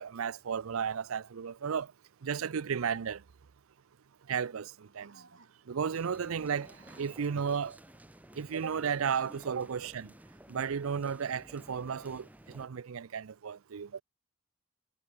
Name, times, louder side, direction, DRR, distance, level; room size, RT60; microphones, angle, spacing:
voice 1, 0.0-1.9 2.2-3.2 4.3-5.2 5.7-7.8 8.4-10.1 10.5-14.0, right 7 dB, 90° right, 0.5 m, -34 dB
sound 1, 4.5-5.8 6.4-8.0, right 3 dB, 65° right, 3.2 m, -61 dB
sound 2, 5.9-12.7, right 1 dB, 5° right, 1.4 m, -54 dB
head